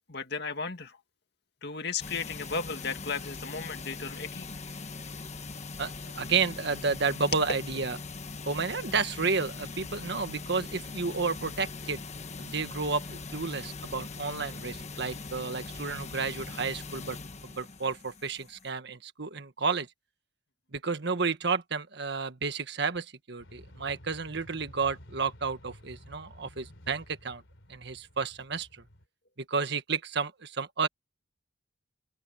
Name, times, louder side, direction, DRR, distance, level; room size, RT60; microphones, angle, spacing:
voice 1, 0.1-1.0 1.6-4.5, left 5 dB, 55° left, 2.2 m, -35 dB
sound 1, 2.0-18.7, left 3 dB, 35° left, 1.3 m, -41 dB
voice 2, 5.8-8.0 8.5-12.0 12.4-17.2 17.4-19.9 20.7-27.4 27.7-28.8 29.5-30.9, right 4 dB, 60° right, 1.5 m, -31 dB
sound 2, 23.4-29.1, equal, 75° left, 3.4 m, -52 dB
open air
head